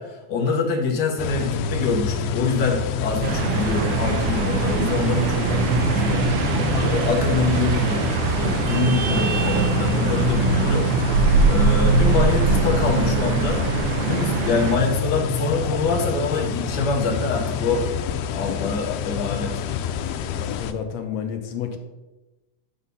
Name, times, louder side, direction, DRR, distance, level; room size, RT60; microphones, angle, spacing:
voice 1, 0.0-6.2 6.8-8.1 8.4-13.6 14.1-17.9 18.3-19.6, left 4 dB, 50° left, 1 dB, 1.3 m, -25 dB
sound 1, 1.2-20.7, left 8 dB, 90° left, 2.0 m, -27 dB
sound 2, 3.2-14.8, right 5 dB, 75° right, 1.4 m, -22 dB
voice 2, 20.4-21.8, left 8 dB, 75° left, 7 dB, 1.8 m, -30 dB
8.9 x 4.2 x 5.4 m, 1.1 s
omnidirectional pair, 3.4 m